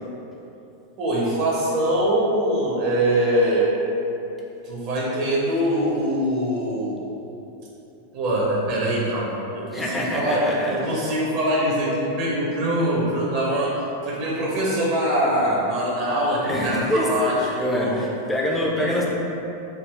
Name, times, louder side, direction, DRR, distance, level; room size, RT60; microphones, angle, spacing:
voice 1, 1.0-3.7 4.6-7.0 8.1-13.8 14.0-17.4 17.7-17.9 18.8-18.9, right 1 dB, 45° right, -5 dB, 0.6 m, -23 dB
voice 2, 9.7-11.1 16.4-19.1, left 1 dB, 10° left, -3 dB, 0.5 m, -25 dB
3.4 x 2.3 x 3.3 m, 2.9 s
figure-of-eight pair, 90°, 0 cm